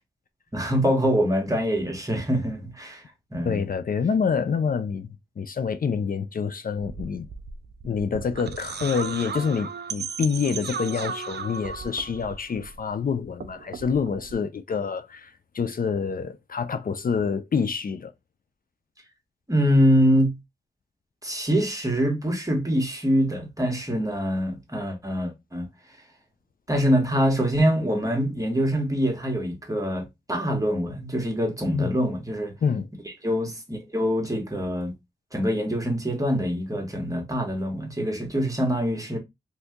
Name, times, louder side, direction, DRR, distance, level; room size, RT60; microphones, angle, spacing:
voice 1, 0.5-3.0 3.3-3.6 19.5-20.3 21.2-25.7 26.7-32.5 33.2-34.9 35.3-39.2, equal, 20° right, 1.3 m, -24 dB
voice 2, 3.4-5.1 5.4-7.3 7.8-18.1 31.7-32.0 32.6-32.9, left 6 dB, 55° left, 0.4 m, -27 dB
sound 1, 6.8-13.0 13.3-14.3, right 6 dB, 70° right, 0.5 m, -36 dB
2.7 x 2.6 x 3.4 m
cardioid pair, 55°, 18 cm